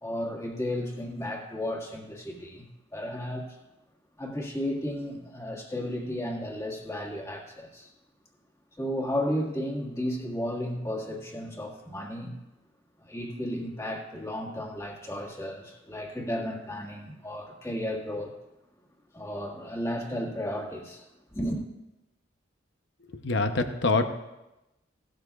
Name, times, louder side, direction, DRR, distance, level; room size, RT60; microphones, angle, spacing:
voice 1, 0.0-2.7 2.9-3.5 4.2-7.9 8.8-12.3 13.0-18.3 19.1-21.0 21.3-21.6, left 1 dB, 15° left, -1 dB, 1.8 m, -33 dB
voice 2, 23.2-24.0, left 3 dB, 65° left, 7 dB, 0.8 m, -24 dB
17.0 x 13.0 x 2.4 m, 0.97 s
head